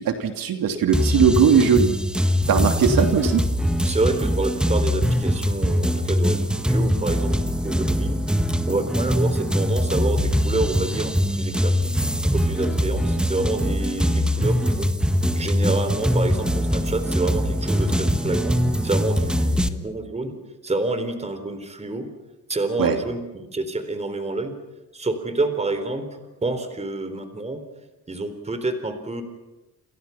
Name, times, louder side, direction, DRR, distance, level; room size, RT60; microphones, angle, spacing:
voice 1, 0.0-1.9 2.5-3.4 22.8-23.0, right 6 dB, 70° right, 5 dB, 3.0 m, -19 dB
sound 1, 0.9-19.7, equal, ahead, 1.4 m, -22 dB
voice 2, 3.8-8.2 8.7-14.9 15.4-20.4 20.6-22.1 22.5-24.6 24.9-27.6 28.1-29.2, right 2 dB, 20° right, 9 dB, 3.8 m, -28 dB
29.0 x 28.5 x 5.9 m, 1.0 s
cardioid pair, 140°, 35 cm